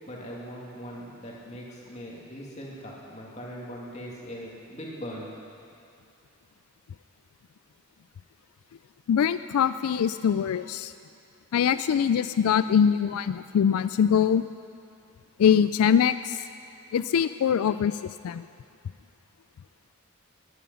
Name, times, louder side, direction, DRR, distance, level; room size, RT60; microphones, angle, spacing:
voice 1, 0.1-5.3, equal, 30° left, -4 dB, 2.6 m, -40 dB
voice 2, 9.1-10.9 11.5-14.4 15.4-16.4 16.9-18.0 18.2-18.4, left 8 dB, 90° left, 13 dB, 0.3 m, -23 dB
18.5 x 11.0 x 5.7 m, 2.4 s
head